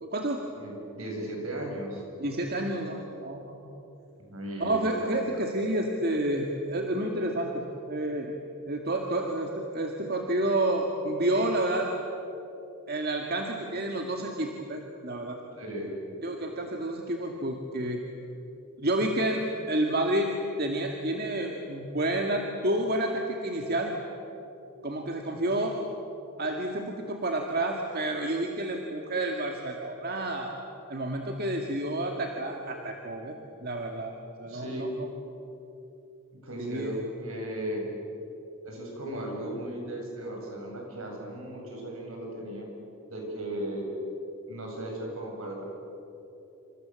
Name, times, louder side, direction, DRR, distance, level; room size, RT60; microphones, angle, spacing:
voice 1, 0.0-0.5 2.2-3.7 4.6-8.3 8.7-11.9 12.9-15.4 16.2-18.0 18.8-20.3 20.6-24.0 24.8-25.8 26.4-30.5 30.9-33.4 33.6-34.1 34.4-34.9 36.6-37.0, right 1 dB, 45° right, 2 dB, 2.0 m, -30 dB
voice 2, 0.6-2.0 4.3-5.4 15.6-15.9 34.4-34.9 36.3-37.9 38.6-42.7 43.1-43.9 44.5-45.7, right 1 dB, 70° right, 0 dB, 7.9 m, -36 dB
28.5 x 27.0 x 7.7 m, 3.0 s
head